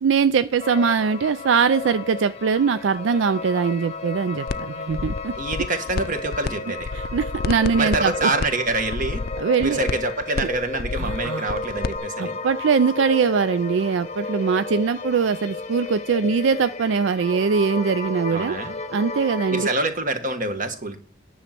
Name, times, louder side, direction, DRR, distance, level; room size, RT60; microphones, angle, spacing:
voice 1, 0.0-5.3 6.9-8.3 9.4-9.8 11.0-11.5 12.2-18.6 18.9-19.7, right 5 dB, 80° right, 0.4 m, -22 dB
sound 1, 0.6-19.7, left 3 dB, 35° left, 0.8 m, -33 dB
sound 2, 4.5-4.6 4.9-6.5 6.8-12.0, left 4 dB, 55° left, 0.5 m, -29 dB
voice 2, 5.3-6.9 7.8-9.2 9.6-12.4 18.3-18.7 19.5-21.0, right 2 dB, 45° right, 1.5 m, -26 dB
9.9 x 6.4 x 5.9 m
head